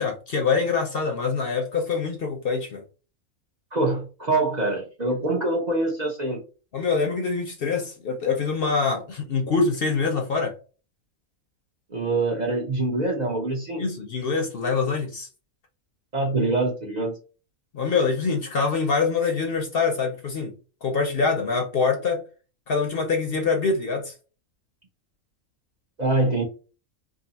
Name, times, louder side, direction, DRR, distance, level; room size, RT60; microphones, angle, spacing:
voice 1, 0.0-2.8 6.7-10.5 13.8-15.3 17.7-20.5 20.8-22.2 22.7-24.1, left 4 dB, 55° left, 3 dB, 0.7 m, -24 dB
voice 2, 3.7-6.4 11.9-13.8 16.1-17.1 26.0-26.4, right 2 dB, 45° right, -1 dB, 0.6 m, -24 dB
2.7 x 2.6 x 3.9 m, 0.35 s
omnidirectional pair, 1.4 m